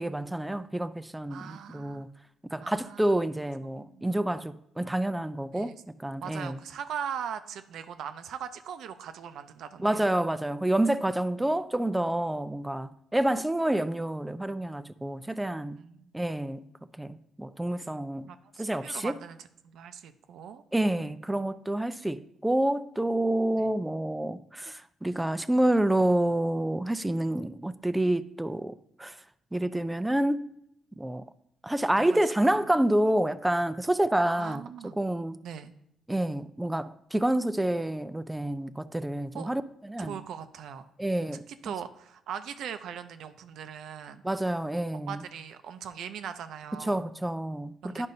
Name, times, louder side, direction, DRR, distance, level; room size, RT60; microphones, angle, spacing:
voice 1, 0.0-2.1 2.5-6.6 9.8-15.8 16.1-16.7 17.0-18.3 18.6-19.2 20.7-29.2 29.5-30.5 31.0-31.2 31.6-34.6 35.0-35.4 36.1-40.2 41.0-41.4 44.2-45.2 46.8-48.1, right 1 dB, 10° right, 0.4 m, -28 dB
voice 2, 1.3-2.0 2.6-3.1 3.9-4.1 5.5-5.8 6.2-10.1 15.7-16.1 18.3-20.6 23.6-23.7 32.0-32.2 34.3-35.0 35.4-35.7 39.3-39.5 40.0-40.9 41.5-44.2 44.9-47.0 47.8-48.1, right 8 dB, 75° right, 0.5 m, -40 dB
10.5 x 5.3 x 2.7 m
cardioid pair, 90°, 0 cm